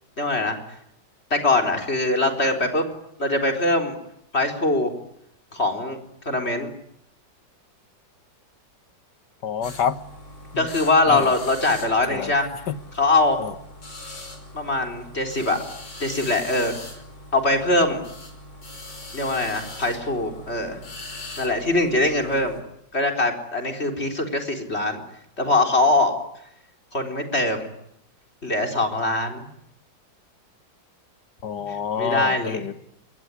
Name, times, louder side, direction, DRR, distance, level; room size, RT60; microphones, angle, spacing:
voice 1, 0.2-0.6 1.3-2.8 3.2-4.0 4.3-4.9 5.5-6.0 6.3-6.7 10.6-12.5 12.9-13.4 14.5-15.6 16.0-16.8 17.3-18.0 19.1-20.8 21.4-22.6 22.9-25.0 25.4-26.1 26.9-27.6 28.4-29.5 32.0-32.6, left 2 dB, 35° left, 4.3 m, -22 dB
voice 2, 9.4-10.0 11.1-11.3 12.1-12.3 12.7-12.8 13.4-13.5 31.4-32.7, left 8 dB, 65° left, 1.9 m, -27 dB
sound 1, 9.6-22.6, left 2 dB, 90° left, 6.2 m, -41 dB
27.0 x 22.0 x 9.8 m
omnidirectional pair, 2.0 m